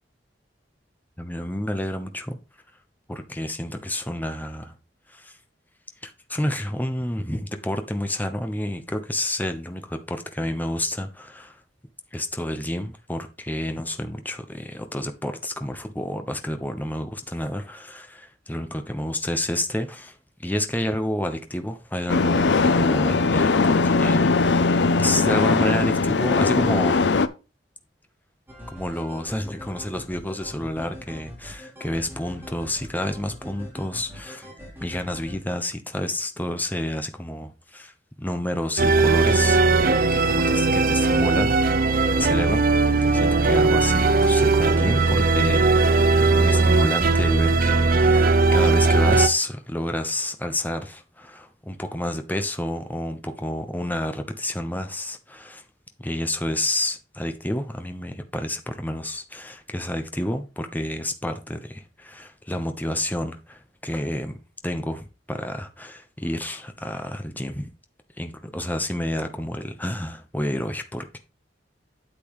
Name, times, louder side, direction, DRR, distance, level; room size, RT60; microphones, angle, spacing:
voice 1, 1.2-2.4 3.1-4.7 5.1-5.3 6.0-11.6 12.1-27.0 28.7-34.5 34.8-37.9 38.2-41.6 42.1-55.6 56.0-64.4 64.6-67.7 68.2-71.2, left 1 dB, 10° left, 1.0 m, -29 dB
sound 1, 22.1-27.3, left 3 dB, 75° left, 0.6 m, -20 dB
sound 2, 28.5-35.4, left 1 dB, 15° right, 3.5 m, -42 dB
sound 3, 38.8-49.3, right 3 dB, 55° right, 0.7 m, -19 dB
8.6 x 7.8 x 3.1 m
head